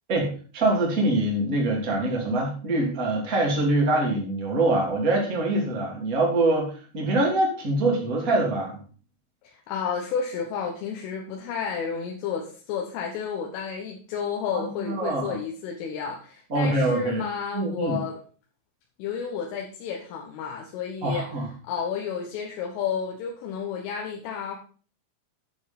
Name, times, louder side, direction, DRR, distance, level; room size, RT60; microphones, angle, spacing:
voice 1, 0.1-8.8 14.7-15.4 16.5-17.2 17.5-18.0 21.0-21.5, right 2 dB, 20° right, -1 dB, 2.4 m, -24 dB
voice 2, 9.4-18.2 19.0-21.3 21.7-24.6, left 6 dB, 80° left, 1 dB, 3.8 m, -31 dB
10.0 x 6.9 x 5.2 m, 0.41 s
omnidirectional pair, 5.7 m